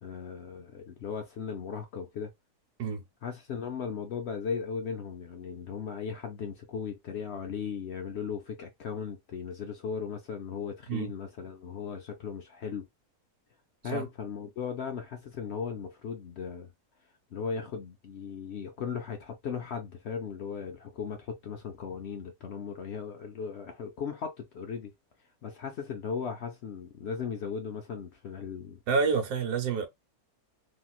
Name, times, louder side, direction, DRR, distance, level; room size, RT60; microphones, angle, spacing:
voice 1, 0.0-2.3 3.2-12.9 13.8-16.7 17.3-24.9 25.4-28.8, left 6 dB, 75° left, 0.6 m, -37 dB
voice 2, 28.9-29.9, right 5 dB, 75° right, 1.4 m, -28 dB
3.1 x 2.8 x 2.3 m
omnidirectional pair, 1.7 m